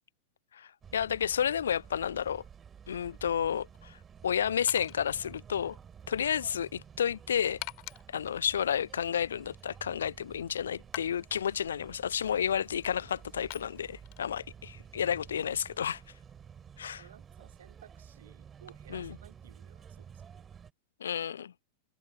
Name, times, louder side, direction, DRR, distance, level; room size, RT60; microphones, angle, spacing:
voice 1, 0.5-2.4 2.9-4.0 4.2-5.8 6.1-7.6 8.1-16.0 16.8-17.0 18.9-19.1 21.0-21.5, left 8 dB, 65° left, 0.3 m, -31 dB
sound 1, 0.8-20.7, right 7 dB, 20° right, 4.5 m, -52 dB
sound 2, 2.3-18.2, left 40 dB or more, 45° left, 3.3 m, -50 dB
voice 2, 17.0-20.5, right 10 dB, 60° right, 2.7 m, -57 dB
figure-of-eight pair, 90°, 0 cm